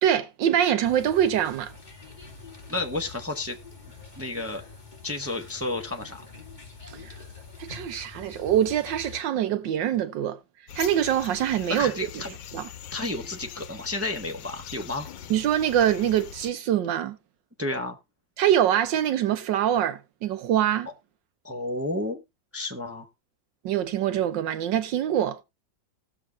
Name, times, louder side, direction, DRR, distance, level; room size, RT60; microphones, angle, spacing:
voice 1, 0.0-1.7 7.0-7.1 7.6-10.4 10.7-11.9 12.5-12.6 15.3-17.2 18.4-20.9 23.6-25.4, right 10 dB, 80° right, 1.4 m, -24 dB
sound 1, 0.8-9.2, left 4 dB, 25° left, 2.4 m, -45 dB
voice 2, 2.7-3.6 4.2-4.6 5.0-6.2 11.7-12.3 12.9-15.1 17.6-18.0 21.4-22.2 22.5-23.1, left 2 dB, 10° right, 0.6 m, -31 dB
sound 2, 10.7-16.5, left 9 dB, 90° left, 1.5 m, -42 dB
19.0 x 7.0 x 2.3 m
omnidirectional pair, 2.0 m